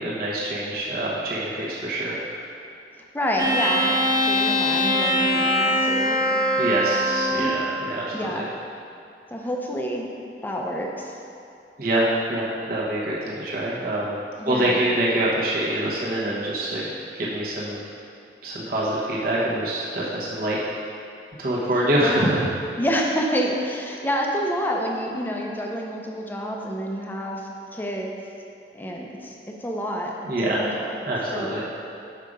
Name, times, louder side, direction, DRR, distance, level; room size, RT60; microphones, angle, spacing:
voice 1, 0.0-2.2 6.6-8.4 11.8-14.2 14.4-17.8 18.4-20.6 21.4-22.5 30.2-30.6 31.1-31.6, right 1 dB, 55° right, -6 dB, 1.1 m, -25 dB
voice 2, 3.1-6.2 8.1-8.5 9.3-10.1 10.4-11.2 14.4-14.8 22.0-22.4 22.8-28.1 28.7-31.7, equal, 10° left, 0 dB, 0.6 m, -28 dB
sound 1, 3.4-7.6, equal, 20° right, 0.8 m, -22 dB
6.5 x 4.9 x 5.3 m, 2.6 s
head